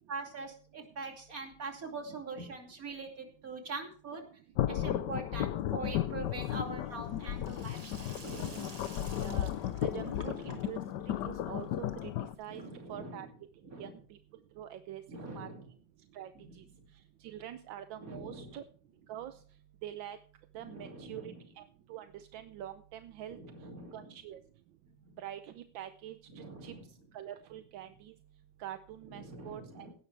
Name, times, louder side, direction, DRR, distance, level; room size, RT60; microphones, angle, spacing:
voice 1, 0.1-4.3 4.7-8.9 10.0-10.7 12.5-13.3 13.6-13.9 15.1-15.7 16.4-16.5 18.0-18.5 20.6-21.4 23.3-24.2 24.8-25.2 26.3-26.9 29.0-29.9, right 3 dB, 45° right, 2 dB, 3.2 m, -44 dB
sound 1, 4.6-12.3, left 12 dB, 70° left, 1.2 m, -34 dB
Sink (filling or washing), 6.2-13.0, right 2 dB, 20° right, 1.4 m, -53 dB
voice 2, 9.2-9.5 9.8-13.3 13.8-14.2 14.6-15.0 15.3-15.5 16.1-16.6 17.2-18.6 19.1-19.3 19.8-20.2 20.5-21.6 21.9-23.4 23.9-24.4 25.2-26.7 27.1-28.1 28.6-29.9, right 11 dB, 80° right, 9 dB, 1.5 m, -45 dB
17.0 x 11.5 x 3.3 m, 0.43 s
omnidirectional pair, 2.1 m